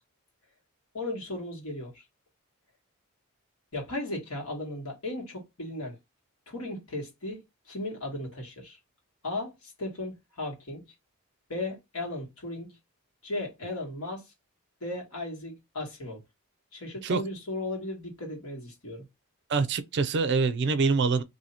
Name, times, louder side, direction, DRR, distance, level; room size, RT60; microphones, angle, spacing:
voice 1, 0.9-2.0 3.7-6.0 6.5-7.4 7.7-8.8 9.2-10.9 11.5-12.7 13.2-14.2 14.8-16.2 16.7-19.1, left 2 dB, 80° left, 1.6 m, -36 dB
voice 2, 19.5-21.2, right 4 dB, 50° right, 0.4 m, -25 dB
2.7 x 2.7 x 4.2 m
head